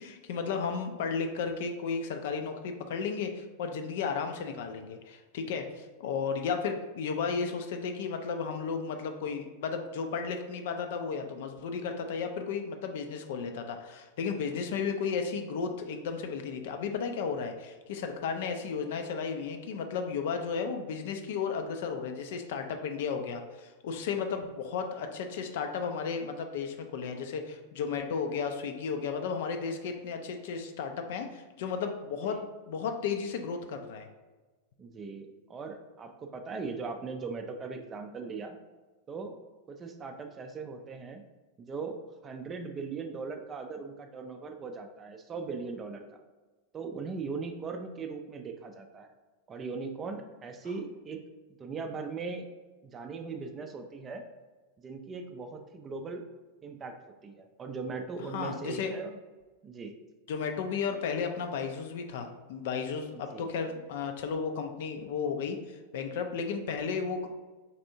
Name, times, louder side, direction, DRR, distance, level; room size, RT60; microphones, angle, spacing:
voice 1, 0.0-32.4 32.7-34.1 58.3-58.9 60.3-67.3, left 5 dB, 55° left, 5 dB, 0.4 m, -34 dB
voice 2, 34.8-38.6 39.1-39.4 39.7-41.2 41.6-46.1 46.7-49.1 49.5-51.2 51.6-52.5 52.8-54.3 54.8-56.2 56.6-56.9 57.2-59.2 59.6-60.0 63.3-63.5, right 4 dB, 20° right, 5 dB, 0.4 m, -39 dB
4.1 x 3.4 x 2.6 m, 1.2 s
figure-of-eight pair, 90°, 0 cm